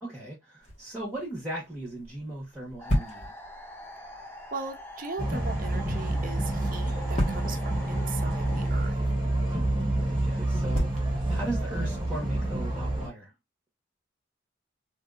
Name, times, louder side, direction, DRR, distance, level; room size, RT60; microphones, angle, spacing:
voice 1, 0.0-3.3 9.8-13.3, right 1 dB, 5° right, 1.2 m, -38 dB
sound 1, 0.6-12.3, left 1 dB, 40° left, 1.3 m, -37 dB
sound 2, 2.8-8.7, left 1 dB, 10° left, 0.6 m, -44 dB
voice 2, 4.5-9.0, right 4 dB, 45° right, 0.6 m, -39 dB
sound 3, 5.2-13.1, right 1 dB, 25° right, 1.0 m, -28 dB
3.1 x 2.7 x 2.4 m
head